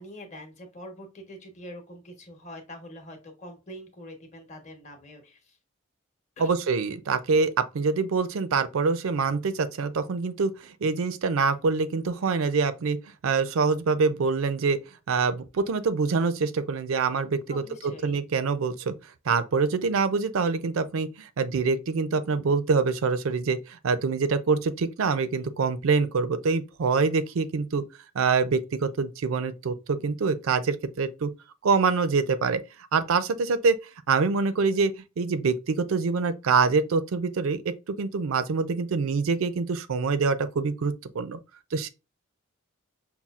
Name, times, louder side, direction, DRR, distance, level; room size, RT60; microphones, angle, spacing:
voice 1, 0.0-5.6 6.4-6.5 17.5-18.2, left 1 dB, 35° left, 0.9 m, -44 dB
voice 2, 6.4-13.0 13.2-14.8 15.1-17.6 18.0-18.9 19.3-27.8 28.1-31.3 31.6-32.6 32.9-33.8 34.1-41.4 41.7-41.9, right 4 dB, 75° right, 0.4 m, -25 dB
5.6 x 2.3 x 2.3 m
head